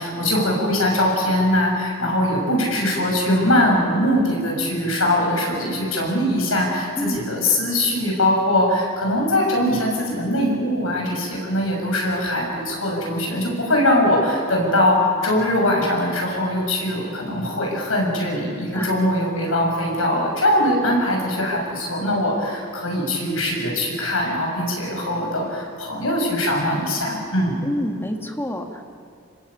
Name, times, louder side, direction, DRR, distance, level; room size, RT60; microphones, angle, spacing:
voice 1, 0.0-27.6, left 1 dB, 85° left, 0 dB, 7.3 m, -21 dB
voice 2, 27.6-28.9, left 1 dB, 10° left, 3 dB, 2.0 m, -28 dB
27.5 x 20.0 x 8.8 m, 2.3 s
head